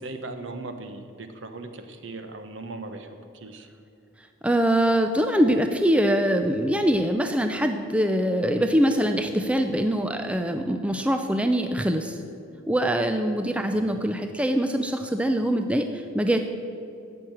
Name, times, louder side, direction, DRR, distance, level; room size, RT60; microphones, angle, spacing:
voice 1, 0.0-3.7 13.7-14.0, right 2 dB, 60° right, 7 dB, 1.1 m, -38 dB
voice 2, 4.4-12.2 12.7-16.4, equal, 5° right, 6 dB, 0.5 m, -23 dB
15.0 x 6.1 x 8.9 m, 2.6 s
head